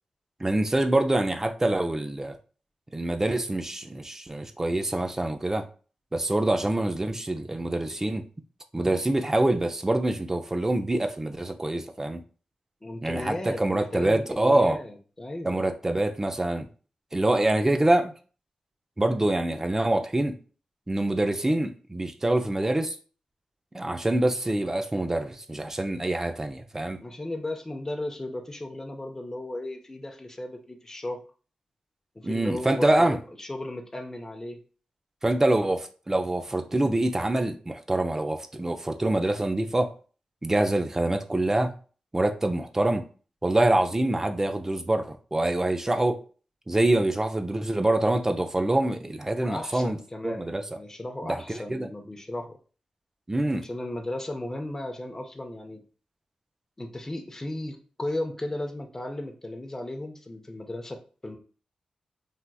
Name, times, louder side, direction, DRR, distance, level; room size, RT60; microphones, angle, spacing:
voice 1, 0.4-2.4 2.9-5.7 6.1-8.2 8.7-12.2 13.0-14.8 15.4-16.7 17.1-18.1 19.0-20.4 20.9-23.0 23.7-27.0 32.2-33.2 35.2-39.9 40.4-41.7 42.1-43.0 43.4-46.2 46.7-50.0 50.2-50.6 51.2-51.9 53.3-53.7, right 1 dB, 20° right, 0.5 m, -25 dB
voice 2, 12.8-15.6 27.0-31.2 32.2-34.6 49.4-52.6 53.6-55.8 56.8-61.4, left 1 dB, 20° left, 0.6 m, -35 dB
3.3 x 2.7 x 2.3 m
cardioid pair, 60°, 2 cm